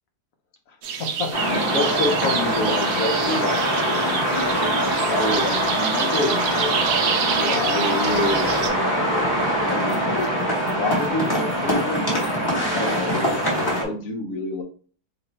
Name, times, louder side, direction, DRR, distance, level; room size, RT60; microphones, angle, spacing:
sound 1, 0.8-8.7, right 7 dB, 70° right, 0.9 m, -28 dB
voice 1, 1.0-6.8 7.4-10.3 10.8-12.0 12.7-14.6, left 3 dB, 65° left, 4 dB, 1.0 m, -28 dB
sound 2, 1.3-13.8, equal, 15° left, 1.1 m, -23 dB
3.0 x 2.6 x 4.2 m, 0.42 s
omnidirectional pair, 1.7 m